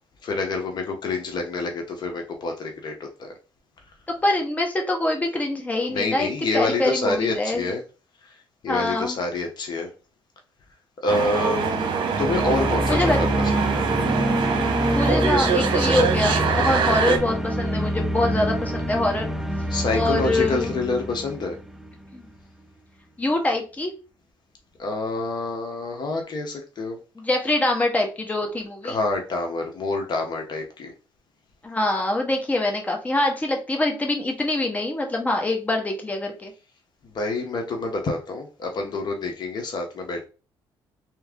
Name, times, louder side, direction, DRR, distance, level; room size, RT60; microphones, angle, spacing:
voice 1, 0.2-3.3 5.9-7.8 8.2-8.3 8.6-9.9 11.0-11.9 12.2-13.3 13.6-13.8 19.7-21.6 24.8-27.0 28.8-30.9 37.1-40.2, left 3 dB, 50° left, 3 dB, 1.0 m, -27 dB
voice 2, 4.2-7.7 8.7-9.2 12.9-13.2 14.9-19.3 19.9-20.7 22.1-22.3 23.2-23.9 27.2-29.0 31.6-36.5, left 2 dB, 15° left, 2 dB, 1.1 m, -24 dB
sound 1, 11.1-17.2, right 6 dB, 60° right, 0.9 m, -24 dB
sound 2, 12.1-22.1, right 1 dB, 5° right, 0.5 m, -26 dB
3.4 x 3.1 x 3.7 m, 0.33 s
cardioid pair, 95°, 9 cm